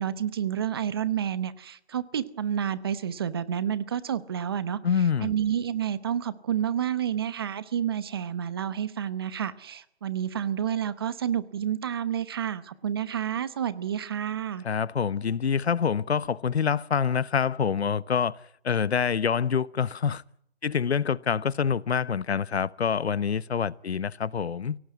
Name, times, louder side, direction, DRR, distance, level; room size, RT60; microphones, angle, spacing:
voice 1, 0.0-4.8 5.2-14.6, right 9 dB, 20° right, 0.9 m, -29 dB
voice 2, 4.8-5.3 14.6-18.4 18.6-20.2 20.6-24.8, left 7 dB, 75° left, 1.0 m, -26 dB
24.0 x 17.5 x 9.4 m
hypercardioid pair, 165°, 32 cm